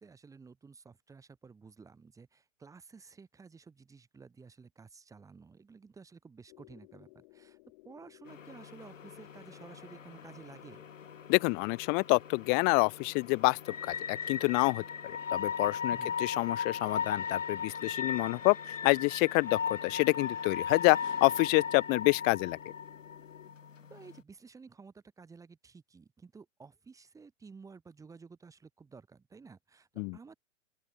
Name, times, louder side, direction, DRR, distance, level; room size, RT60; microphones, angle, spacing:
voice 1, 0.0-7.6 7.9-10.8 15.9-16.2 23.9-30.4, right 5 dB, 10° right, 1.8 m, -53 dB
sound 1, 6.5-23.5, left 23 dB, 40° left, 6.0 m, -58 dB
sound 2, 8.3-24.2, left 6 dB, 80° left, 0.9 m, -38 dB
voice 2, 11.3-18.6 18.8-22.6 30.0-30.2, left 35 dB, 25° left, 0.8 m, -28 dB
open air
figure-of-eight pair, 110°, 38 cm